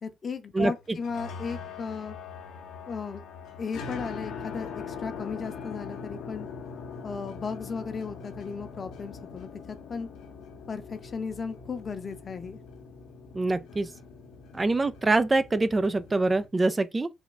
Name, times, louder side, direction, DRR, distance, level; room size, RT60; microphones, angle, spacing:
voice 1, 0.0-2.2 2.9-3.2 3.6-6.5 7.0-10.1 10.7-12.6, left 5 dB, 40° left, 0.7 m, -35 dB
sound 1, 0.9-16.5, left 5 dB, 70° left, 0.8 m, -42 dB
voice 2, 13.3-13.9 14.5-17.1, right 2 dB, 25° right, 0.3 m, -24 dB
3.5 x 2.3 x 3.8 m
supercardioid pair, 65°, 0 cm